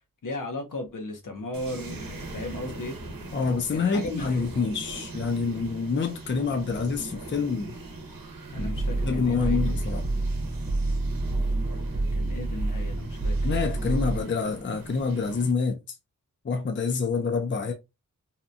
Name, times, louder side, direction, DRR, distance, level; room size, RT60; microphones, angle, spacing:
voice 1, 0.2-3.0 3.7-4.4 8.5-9.6 12.1-13.4, left 2 dB, 65° left, 0.8 m, -36 dB
sound 1, 1.5-15.5, right 2 dB, 80° right, 0.8 m, -41 dB
voice 2, 3.3-7.7 8.6-8.7 9.0-10.0 13.4-15.8 16.4-17.7, left 5 dB, 35° left, 0.5 m, -27 dB
sound 2, 8.5-14.2, right 2 dB, 25° right, 0.5 m, -28 dB
2.8 x 2.2 x 2.5 m
wide cardioid pair, 80°, 34 cm